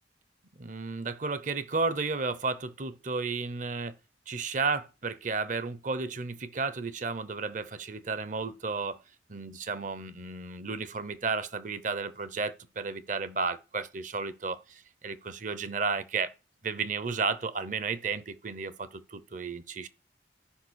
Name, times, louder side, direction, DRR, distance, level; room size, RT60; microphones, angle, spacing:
voice 1, 0.6-3.9 4.3-9.0 9.3-16.3 16.6-19.9, right 4 dB, 45° right, 0.8 m, -33 dB
13.0 x 5.2 x 6.3 m
head